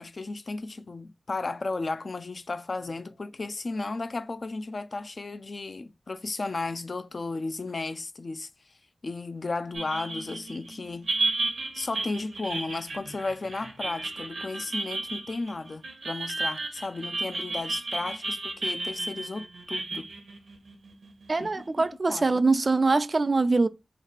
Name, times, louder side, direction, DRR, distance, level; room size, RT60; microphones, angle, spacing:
voice 1, 0.0-8.5 9.0-11.1 11.7-20.1 21.4-21.6 22.1-22.4, left 3 dB, 55° left, 0.4 m, -34 dB
sound 1, 9.7-21.5, right 2 dB, 85° right, 0.9 m, -33 dB
voice 2, 21.3-23.7, right 3 dB, 50° right, 0.3 m, -23 dB
3.2 x 2.4 x 4.2 m
wide cardioid pair, 60°, 0 cm